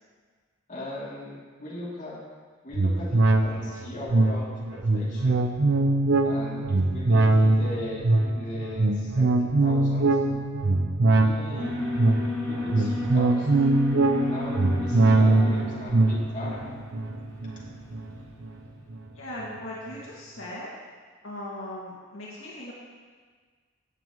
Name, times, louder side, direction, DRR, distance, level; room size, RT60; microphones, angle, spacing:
voice 1, 0.7-2.1 2.6-5.4 6.2-10.2 11.1-11.7 12.5-13.5 14.2-16.7, left 1 dB, 40° left, -8 dB, 3.0 m, -39 dB
sound 1, 2.7-18.5 18.9-19.0, right 2 dB, 55° right, 0.7 m, -23 dB
Alarm, 11.6-18.7, left 2 dB, 15° left, 1.9 m, -34 dB
voice 2, 19.1-20.7 21.2-22.7, left 1 dB, 75° left, -6 dB, 2.2 m, -38 dB
16.5 x 7.6 x 3.1 m, 1.5 s
head